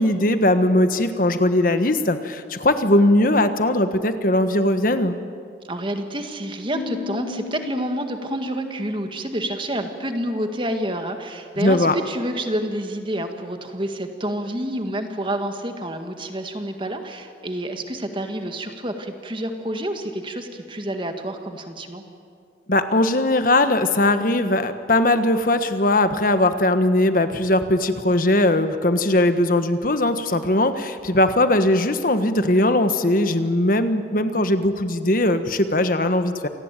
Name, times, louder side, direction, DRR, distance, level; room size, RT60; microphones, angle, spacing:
voice 1, 0.0-5.2 11.6-11.9 22.7-36.5, left 1 dB, 50° left, 9 dB, 1.4 m, -19 dB
voice 2, 5.6-22.0, right 1 dB, 25° right, 6 dB, 1.9 m, -28 dB
Piano, 6.7-10.2, left 5 dB, 85° left, 5.6 m, -37 dB
27.0 x 18.5 x 9.1 m, 2.3 s
head